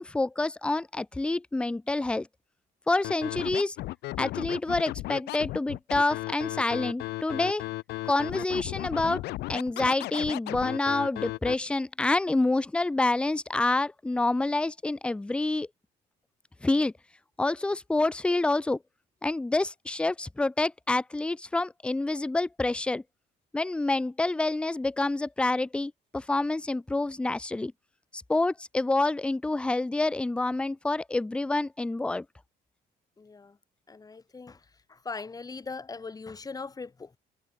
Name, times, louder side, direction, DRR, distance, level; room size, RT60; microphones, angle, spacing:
voice 1, 0.0-2.3 2.9-3.8 4.2-7.6 8.0-9.2 9.5-15.7 16.6-16.9 17.4-18.8 19.2-23.0 23.5-27.7 28.1-32.3, left 2 dB, 5° left, 0.3 m, -27 dB
Scratching (performance technique), 3.0-11.5, left 18 dB, 80° left, 0.8 m, -35 dB
voice 2, 33.2-33.6 33.9-34.6 34.9-37.2, left 4 dB, 20° left, 1.9 m, -40 dB
cardioid pair, 110°, 17 cm